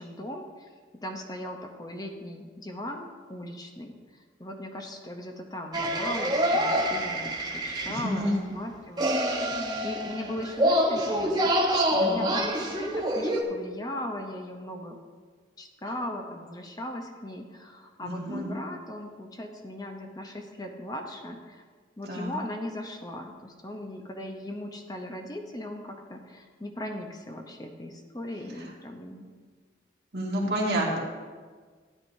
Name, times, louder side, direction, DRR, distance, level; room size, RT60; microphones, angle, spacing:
voice 1, 0.0-9.6 9.8-15.0 15.6-21.6 22.0-29.2, left 1 dB, 20° left, 3 dB, 0.7 m, -38 dB
sound 1, 5.7-8.2 9.0-13.4, equal, 20° right, 0.8 m, -26 dB
voice 2, 7.9-8.5 9.7-9.8 11.7-12.2 18.0-18.5 22.1-22.4 30.1-31.0, right 1 dB, 65° right, -3 dB, 2.0 m, -29 dB
13.0 x 9.5 x 2.7 m, 1.5 s
head